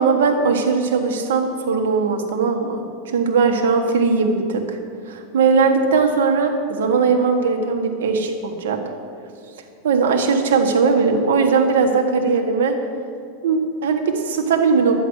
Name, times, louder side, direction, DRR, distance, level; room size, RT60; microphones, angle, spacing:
voice 1, 0.0-4.8 5.1-8.8 9.8-12.8 13.4-14.9, right 5 dB, 85° right, 4 dB, 1.7 m, -19 dB
11.5 x 10.0 x 6.5 m, 2.5 s
supercardioid pair, 130°, 0 cm